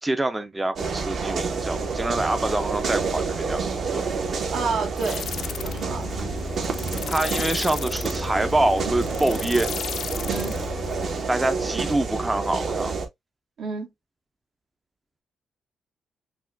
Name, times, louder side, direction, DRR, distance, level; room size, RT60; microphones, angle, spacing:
voice 1, 0.0-4.1 7.1-9.7 11.3-13.0, right 2 dB, 15° right, 0.4 m, -25 dB
sound 1, 0.8-13.1, right 4 dB, 55° right, 0.9 m, -29 dB
voice 2, 4.5-5.3 5.6-6.1 10.2-10.5 13.6-13.9, right 4 dB, 75° right, 1.4 m, -29 dB
sound 2, 5.0-11.3, left 8 dB, 55° left, 0.3 m, -35 dB
5.9 x 2.2 x 2.4 m
cardioid pair, 130°, 0 cm